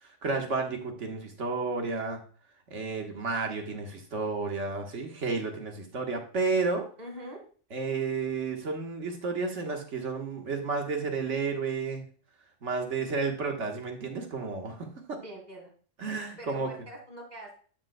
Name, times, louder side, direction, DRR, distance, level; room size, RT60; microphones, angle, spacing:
voice 1, 0.0-2.2 2.7-6.9 7.7-12.0 12.6-15.2 16.0-16.7, right 4 dB, 70° right, 3 dB, 1.7 m, -32 dB
voice 2, 7.0-7.4 15.2-15.7 16.4-17.6, right 1 dB, 35° right, 0 dB, 2.5 m, -43 dB
12.0 x 6.5 x 2.2 m, 0.42 s
omnidirectional pair, 1.3 m